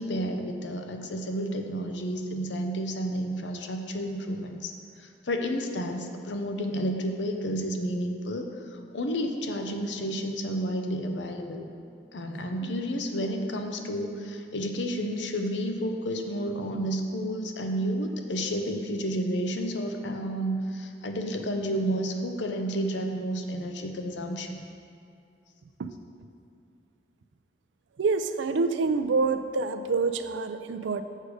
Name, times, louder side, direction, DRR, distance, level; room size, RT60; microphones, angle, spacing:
voice 1, 0.0-4.7 5.0-11.7 12.1-24.6, equal, 85° left, 4 dB, 0.7 m, -31 dB
voice 2, 28.0-31.0, right 4 dB, 90° right, 9 dB, 0.4 m, -26 dB
6.5 x 6.4 x 4.9 m, 2.4 s
head